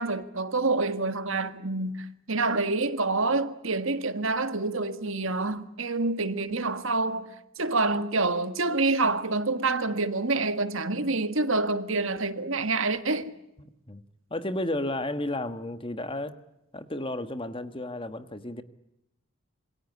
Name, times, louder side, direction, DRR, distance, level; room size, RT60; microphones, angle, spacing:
voice 1, 0.0-13.3, right 3 dB, 60° right, 1.7 m, -27 dB
voice 2, 14.3-16.4 16.7-18.6, left 1 dB, 25° left, 1.3 m, -32 dB
27.5 x 22.0 x 8.3 m
head